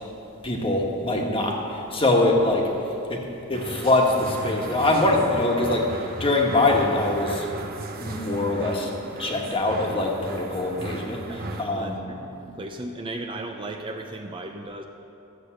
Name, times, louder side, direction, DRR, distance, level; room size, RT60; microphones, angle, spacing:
voice 1, 0.4-2.7 3.1-7.5 7.9-8.9 9.2-12.2, left 2 dB, 25° left, 0 dB, 1.4 m, -23 dB
sound 1, 3.5-11.6, right 2 dB, 40° right, 1.0 m, -36 dB
voice 2, 12.5-14.8, right 2 dB, 25° right, 3 dB, 0.5 m, -35 dB
13.0 x 8.3 x 6.6 m, 2.9 s
head